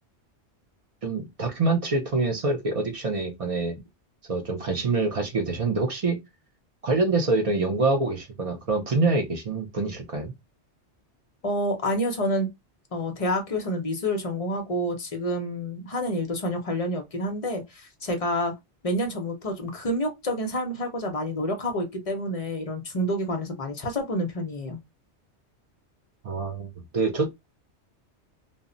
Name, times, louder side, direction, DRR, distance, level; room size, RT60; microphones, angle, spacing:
voice 1, 1.0-3.8 4.3-6.2 6.8-10.3 26.2-27.3, right 3 dB, 55° right, 0.4 m, -25 dB
voice 2, 11.4-12.5 12.9-18.5 18.8-24.8, equal, 45° left, 0.5 m, -28 dB
2.1 x 2.0 x 3.7 m
omnidirectional pair, 1.2 m